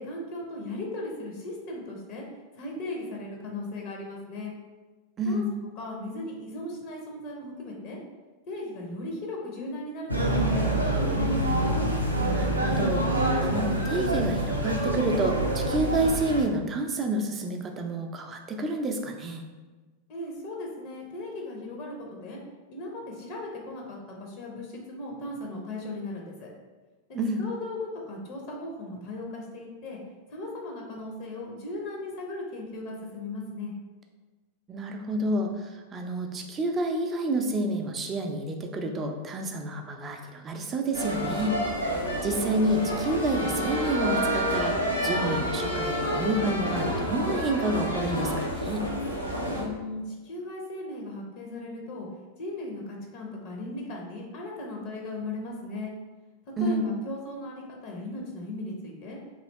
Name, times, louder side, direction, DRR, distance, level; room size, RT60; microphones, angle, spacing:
voice 1, 0.0-2.2 2.5-4.5 5.2-5.5 5.8-8.0 8.5-11.4 20.1-22.4 22.7-26.5 27.4-27.8 28.1-30.0 30.3-33.7 49.5-52.1 52.4-55.9 56.6-59.2, left 2 dB, 45° left, -1 dB, 0.7 m, -37 dB
sound 1, 10.1-16.5, right 1 dB, 85° right, 0.4 m, -26 dB
voice 2, 12.2-19.4 27.1-27.4 34.7-41.6 42.2-48.9 56.6-56.9, right 1 dB, 25° right, 4 dB, 0.4 m, -29 dB
sound 2, 40.9-49.6, equal, 90° left, 0.6 m, -29 dB
3.0 x 2.7 x 3.1 m, 1.3 s
figure-of-eight pair, 90°, 0 cm